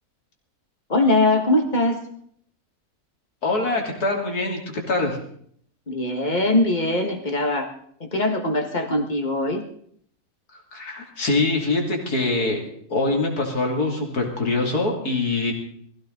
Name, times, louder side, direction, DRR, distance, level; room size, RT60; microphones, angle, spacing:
voice 1, 0.9-2.0 5.9-7.7 8.0-9.6, left 2 dB, 30° left, 4 dB, 1.9 m, -21 dB
voice 2, 3.4-5.2 10.5-12.6 12.9-15.5, left 2 dB, 75° left, 1 dB, 3.3 m, -24 dB
20.5 x 15.5 x 3.9 m, 0.63 s
omnidirectional pair, 1.6 m